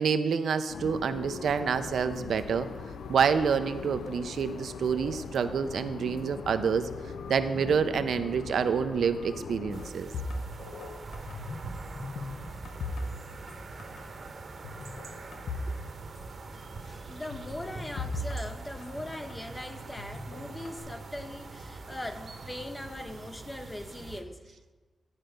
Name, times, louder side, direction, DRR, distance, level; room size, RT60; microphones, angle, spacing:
voice 1, 0.0-2.7 3.1-6.9 7.3-10.1, right 6 dB, 75° right, 10 dB, 0.4 m, -27 dB
sound 1, 0.7-9.9, left 6 dB, 90° left, 0.4 m, -41 dB
sound 2, 9.7-24.2, right 3 dB, 55° right, 0.9 m, -43 dB
sound 3, 10.1-11.7 11.9-13.5 13.8-14.0 14.6-15.8 16.0-16.1 17.3-19.4 20.0-20.8, left 2 dB, 70° left, 0.8 m, -37 dB
voice 2, 16.5-24.7, left 1 dB, 15° left, 8 dB, 0.6 m, -41 dB
11.0 x 4.4 x 5.1 m, 1.3 s
wide cardioid pair, 115°, 0 cm